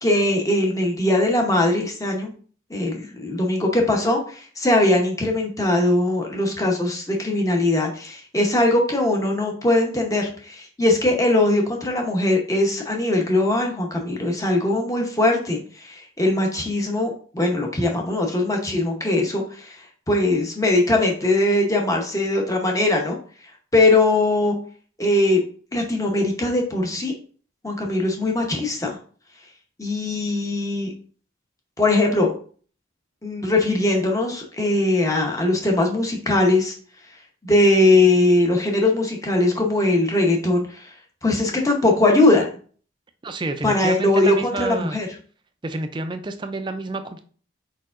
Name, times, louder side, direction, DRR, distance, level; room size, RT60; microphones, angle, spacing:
voice 1, 0.0-2.3 2.7-19.8 20.1-23.2 23.7-24.6 25.0-25.4 25.7-27.1 27.6-29.0 29.8-30.9 31.8-32.3 33.2-36.7 37.4-40.9 41.2-42.5 43.6-45.1, left 2 dB, 15° left, 1 dB, 0.8 m, -20 dB
voice 2, 43.2-45.0 45.6-47.2, right 2 dB, 25° right, 8 dB, 0.4 m, -29 dB
4.6 x 4.5 x 2.4 m, 0.43 s
head